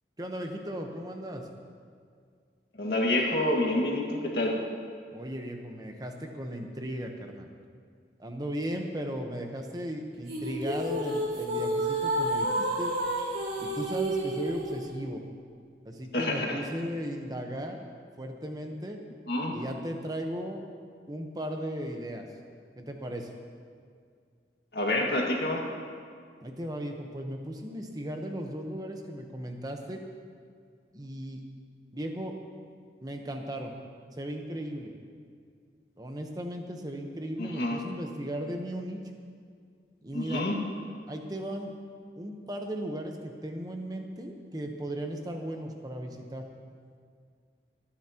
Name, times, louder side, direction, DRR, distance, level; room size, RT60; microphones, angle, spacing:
voice 1, 0.2-1.5 5.1-7.5 8.2-13.0 13.6-15.2 15.8-19.0 19.5-20.7 21.1-22.2 22.8-23.3 26.4-30.0 30.9-31.4 31.9-32.4 33.0-33.7 34.2-34.9 36.0-39.0 40.0-40.4 41.1-41.7 42.2-46.5, equal, 20° right, 3 dB, 1.0 m, -36 dB
voice 2, 2.7-4.6 16.1-16.6 19.3-19.6 24.7-25.6 37.4-37.8 40.1-40.6, left 1 dB, 60° left, -1 dB, 2.0 m, -28 dB
sound 1, 10.3-14.8, right 1 dB, 75° right, 2.9 m, -30 dB
27.5 x 9.9 x 3.0 m, 2.1 s
head